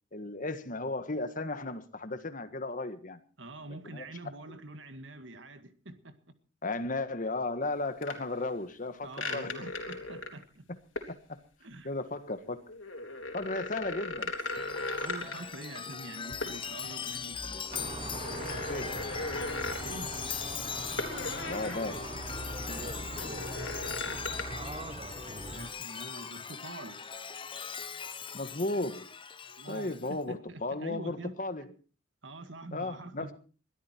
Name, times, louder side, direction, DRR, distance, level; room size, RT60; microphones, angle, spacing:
voice 1, 0.1-3.2 3.9-4.1 6.6-9.5 11.1-11.4 11.8-12.6 13.3-14.3 18.7-19.1 21.5-22.1 28.3-29.1 29.7-31.7 32.7-33.3, left 2 dB, 45° left, 10 dB, 1.6 m, -35 dB
voice 2, 3.4-6.2 9.0-10.7 11.6-11.9 15.0-17.6 19.8-20.1 22.7-23.3 25.5-27.1 29.4-31.4 32.2-33.3, right 2 dB, 75° right, 9 dB, 1.9 m, -45 dB
sound 1, 8.0-8.1 9.1-10.4 11.0-11.1 12.6-15.6 16.4-16.6 17.0-17.2 17.7-19.8 21.0-21.9 22.3-22.4 23.2-24.4, left 2 dB, 85° left, 3.5 m, -37 dB
Chime, 14.3-30.1, left 6 dB, 25° left, 0.9 m, -40 dB
sound 2, 17.7-25.7, right 2 dB, 30° right, 1.2 m, -41 dB
22.0 x 13.0 x 4.5 m, 0.39 s
head